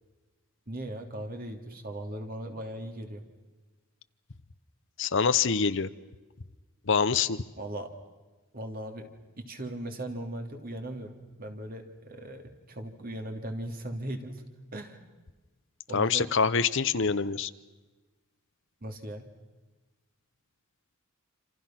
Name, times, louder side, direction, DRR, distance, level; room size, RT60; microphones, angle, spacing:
voice 1, 0.7-3.2 7.6-7.9 8.5-9.1 9.4-14.4 14.7-15.0 15.9-16.3 18.8-19.3, right 1 dB, 45° right, 4 dB, 3.0 m, -38 dB
voice 2, 5.0-5.9 6.9-7.4 15.9-17.5, left 5 dB, 60° left, 13 dB, 0.9 m, -25 dB
28.0 x 27.5 x 6.0 m, 1.2 s
head